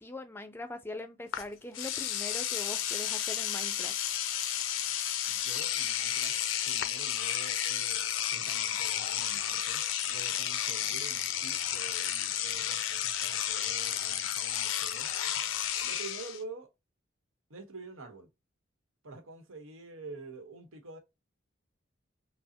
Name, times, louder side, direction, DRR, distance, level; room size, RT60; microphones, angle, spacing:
voice 1, 0.0-4.0, left 2 dB, 10° left, 0.5 m, -42 dB
Engine / Domestic sounds home sounds, 1.3-1.4 1.7-16.4, left 10 dB, 80° left, 0.6 m, -32 dB
voice 2, 5.3-6.4 6.6-15.1 15.8-16.7 17.5-18.3 19.0-21.0, right 3 dB, 90° right, 1.1 m, -47 dB
5.4 x 2.0 x 2.8 m
head